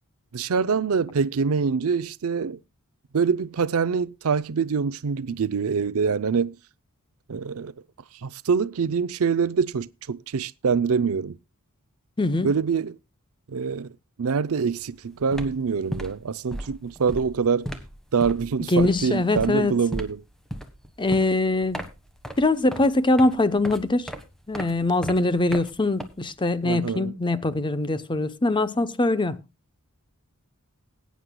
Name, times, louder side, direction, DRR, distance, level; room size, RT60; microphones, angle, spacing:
voice 1, 0.3-2.6 3.1-6.6 7.3-7.7 8.2-11.4 12.4-12.9 13.5-13.9 14.2-17.7 18.1-20.2 26.6-27.1, right 5 dB, 70° right, 0.5 m, -25 dB
voice 2, 12.2-12.5 18.7-19.7 21.0-21.9 22.4-24.1 24.5-29.4, left 2 dB, 20° left, 0.8 m, -23 dB
sound 1, 14.7-14.9 15.2-26.6, right 1 dB, ahead, 1.3 m, -37 dB
20.5 x 9.4 x 2.2 m
head